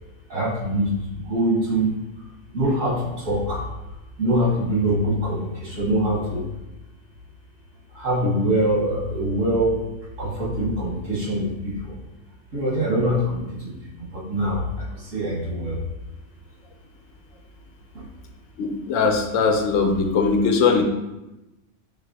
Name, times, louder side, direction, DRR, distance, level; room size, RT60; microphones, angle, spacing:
voice 1, 0.3-1.9 2.5-3.6 4.2-6.4 7.9-9.8 10.2-12.0 12.5-13.7 14.0-15.8 17.9-18.0, right 1 dB, 90° right, -6 dB, 1.9 m, -24 dB
voice 2, 18.6-20.8, left 4 dB, 85° left, 4 dB, 1.0 m, -20 dB
5.2 x 2.9 x 2.8 m, 0.98 s
omnidirectional pair, 1.3 m